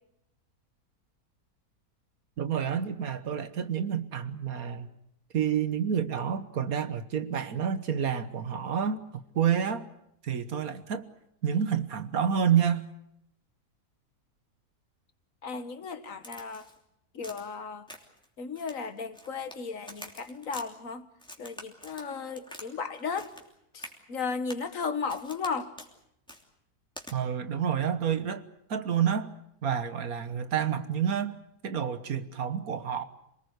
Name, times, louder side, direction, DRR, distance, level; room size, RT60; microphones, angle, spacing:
voice 1, 2.4-4.9 5.3-9.0 9.4-9.9 10.2-11.0 11.4-12.9 27.1-28.4 28.7-29.3 29.6-31.4 31.6-33.0, right 8 dB, 70° right, 1.7 m, -29 dB
voice 2, 15.4-16.7 17.1-17.9 18.4-21.1 21.4-23.3 23.7-25.7, left 5 dB, 60° left, 1.8 m, -35 dB
Crack, 16.2-16.8 17.2-17.5 17.9-18.2 18.6-19.6 19.9-20.7 21.2-22.7 22.9-23.5 23.8-24.0 24.5-24.7 25.1-25.5 25.8-25.9 26.3-26.4 27.0-27.1, equal, 5° left, 3.0 m, -46 dB
27.0 x 19.5 x 8.1 m
omnidirectional pair, 1.6 m